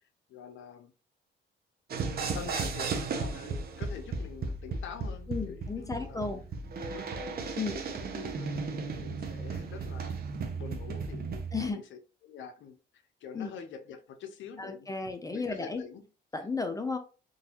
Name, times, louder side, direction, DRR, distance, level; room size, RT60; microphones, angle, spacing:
voice 1, 0.3-0.9 2.0-6.3 6.9-8.5 9.0-10.2 10.5-12.8 13.2-14.9 15.3-16.1, left 6 dB, 75° left, 0.7 m, -46 dB
sound 1, 1.9-11.7, right 4 dB, 50° right, 0.7 m, -35 dB
voice 2, 5.3-6.4 7.5-7.8 11.5-11.8 13.3-13.5 14.6-15.8 16.3-17.0, left 4 dB, 15° left, 0.5 m, -34 dB
3.8 x 2.6 x 2.9 m
cardioid pair, 90°, 20 cm